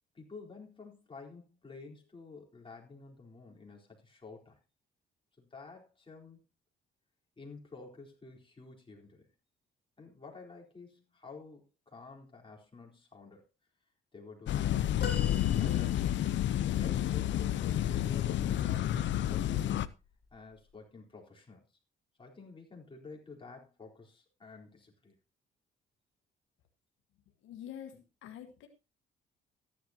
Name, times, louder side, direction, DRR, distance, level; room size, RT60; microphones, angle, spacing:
voice 1, 0.1-4.6 5.4-6.4 7.4-9.3 10.0-13.4 14.1-15.2 15.5-16.3 16.7-19.9 20.3-21.6 22.2-25.2, left 3 dB, 25° left, -1 dB, 4.2 m, -51 dB
sound 1, 14.5-19.9, left 12 dB, 70° left, 0.7 m, -30 dB
sound 2, 15.0-16.4 18.8-19.0 20.3-20.4, left 5 dB, 50° left, 3.4 m, -42 dB
voice 2, 27.4-28.7, left 10 dB, 85° left, 5 dB, 1.6 m, -46 dB
14.5 x 11.0 x 2.9 m, 0.28 s
cardioid pair, 90°, 20 cm